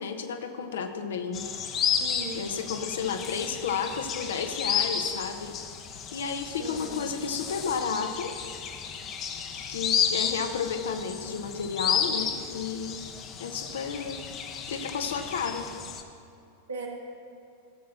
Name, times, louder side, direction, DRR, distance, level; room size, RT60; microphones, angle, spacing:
voice 1, 0.0-1.5 2.3-5.6 6.1-8.3 9.7-13.0 13.4-14.2 14.7-15.7, left 6 dB, 60° left, 6 dB, 1.0 m, -32 dB
sound 1, 1.3-16.0, left 7 dB, 30° left, 0.9 m, -32 dB
voice 2, 2.0-2.5 6.6-7.0 16.7-16.9, right 4 dB, 70° right, -1 dB, 2.1 m, -38 dB
16.0 x 7.5 x 5.9 m, 2.5 s
figure-of-eight pair, 90°, 0 cm